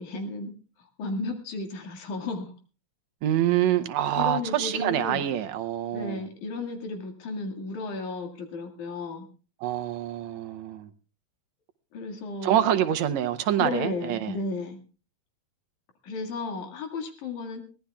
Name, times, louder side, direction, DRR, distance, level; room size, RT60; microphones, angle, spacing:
voice 1, 0.0-2.5 4.1-5.3 5.9-9.3 11.9-12.6 13.6-14.8 16.0-17.6, left 3 dB, 90° left, 3.6 m, -34 dB
voice 2, 3.2-6.2 9.6-10.9 12.4-14.4, right 11 dB, 75° right, 2.0 m, -26 dB
23.0 x 17.5 x 2.4 m
omnidirectional pair, 3.4 m